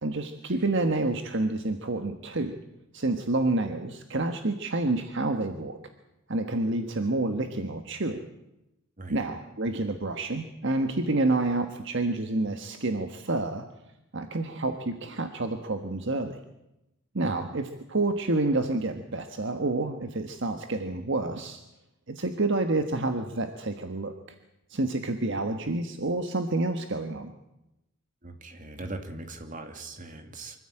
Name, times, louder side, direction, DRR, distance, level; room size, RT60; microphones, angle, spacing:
voice 1, 0.0-2.5 2.9-5.8 6.3-8.2 9.1-13.6 14.1-16.4 17.1-21.6 22.1-24.1 24.7-27.3, right 2 dB, 60° right, 6 dB, 1.5 m, -28 dB
voice 2, 28.2-30.6, right 2 dB, 40° right, 6 dB, 2.5 m, -40 dB
24.5 x 14.5 x 9.0 m, 0.91 s
head